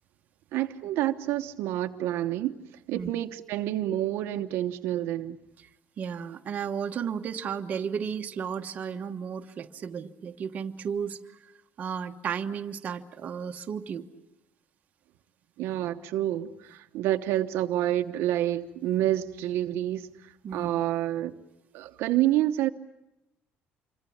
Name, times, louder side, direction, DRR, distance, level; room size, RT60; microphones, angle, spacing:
voice 1, 0.5-2.5 2.9-5.4 15.6-21.4 21.7-22.7, right 13 dB, 75° right, 1.1 m, -28 dB
voice 2, 6.0-11.5 11.8-14.1 20.4-20.7, right 7 dB, 35° right, 1.2 m, -34 dB
27.0 x 24.0 x 8.6 m
cardioid pair, 165°, 4 cm